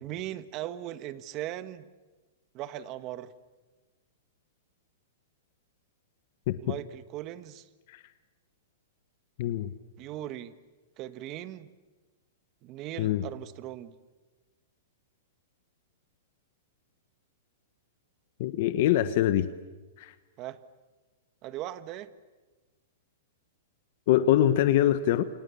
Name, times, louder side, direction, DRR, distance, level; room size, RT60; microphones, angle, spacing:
voice 1, 0.0-1.8 2.5-3.3 6.6-7.7 10.0-10.5 11.0-11.7 12.6-13.9 20.4-20.6 21.4-22.1, right 13 dB, 30° right, 13 dB, 1.3 m, -38 dB
voice 2, 9.4-9.7 13.0-13.2 18.4-19.5 20.0-20.1 24.1-25.2, left 12 dB, 50° left, 12 dB, 1.2 m, -24 dB
28.5 x 28.5 x 7.1 m, 1.2 s
hypercardioid pair, 155°, 0 cm